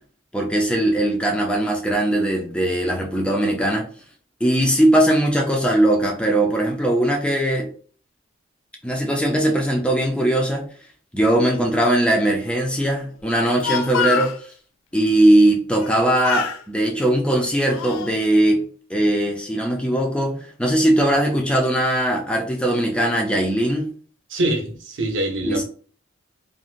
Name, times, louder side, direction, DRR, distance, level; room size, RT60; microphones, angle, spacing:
voice 1, 0.3-3.8 4.4-7.7 8.8-10.7 11.1-14.3 14.9-18.6 18.9-23.9 25.4-25.6, right 1 dB, 5° left, 0.5 m, -20 dB
Speech, 13.6-14.4 15.7-16.0 16.2-16.6 17.3-18.1, left 6 dB, 90° left, 0.3 m, -26 dB
voice 2, 24.3-25.6, right 1 dB, 70° right, 0.7 m, -24 dB
3.2 x 2.6 x 2.4 m
head